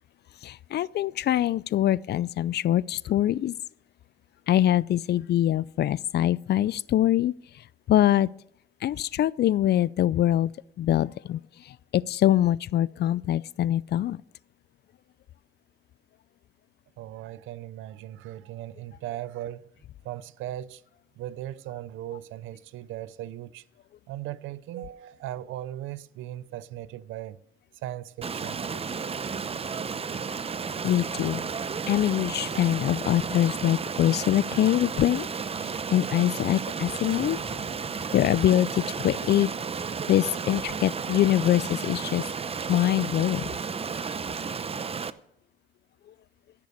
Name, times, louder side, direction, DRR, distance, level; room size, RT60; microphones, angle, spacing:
voice 1, 0.4-3.5 4.5-7.3 7.9-8.3 8.8-10.5 10.8-11.4 11.9-14.2 30.8-31.4 31.9-35.3 35.9-37.4 38.1-39.5 40.1-42.2 42.7-43.4, left 12 dB, 55° left, 0.4 m, -23 dB
voice 2, 17.0-19.7 20.0-20.8 21.2-23.6 24.1-27.4 27.8-28.6, right 13 dB, 90° right, 0.5 m, -38 dB
Stream, 28.2-45.1, right 5 dB, 30° right, 0.6 m, -33 dB
Slam, 36.7-39.0, right 2 dB, 60° right, 4.7 m, -49 dB
15.5 x 6.8 x 6.6 m
cardioid pair, 90°, 20 cm